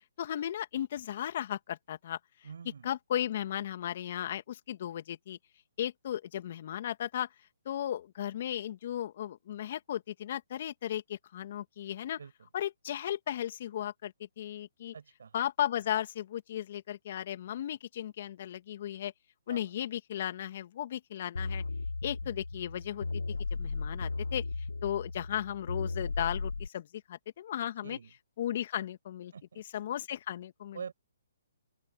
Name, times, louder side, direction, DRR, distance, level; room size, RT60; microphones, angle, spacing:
voice 1, 0.2-2.2 2.8-5.4 5.8-7.3 7.7-12.2 12.5-14.9 15.3-19.1 19.5-21.6 22.0-23.1 23.6-24.4 24.8-28.0 28.4-30.8, left 11 dB, 50° left, 2.5 m, -35 dB
voice 2, 2.4-2.9 12.2-12.3 14.9-15.4 19.5-19.6 27.8-28.1 29.3-29.6 30.7-30.9, right 6 dB, 70° right, 5.9 m, -45 dB
sound 1, 21.4-26.7, left 3 dB, 85° left, 1.2 m, -36 dB
open air
hypercardioid pair, 140°, 0 cm